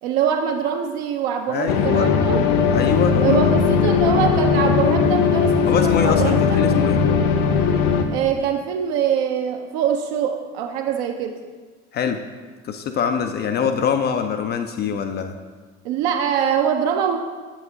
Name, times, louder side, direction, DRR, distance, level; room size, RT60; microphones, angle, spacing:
voice 1, 0.0-2.4 3.2-6.6 8.1-11.4 15.8-17.2, right 8 dB, 55° right, 5 dB, 0.6 m, -23 dB
voice 2, 1.5-2.1 2.7-3.4 5.7-7.0 11.9-12.2 12.6-15.4, left 7 dB, 25° left, 7 dB, 0.4 m, -23 dB
sound 1, 1.7-8.0, left 6 dB, 50° left, 0.7 m, -18 dB
7.6 x 7.1 x 2.8 m, 1.4 s
figure-of-eight pair, 60°, 39 cm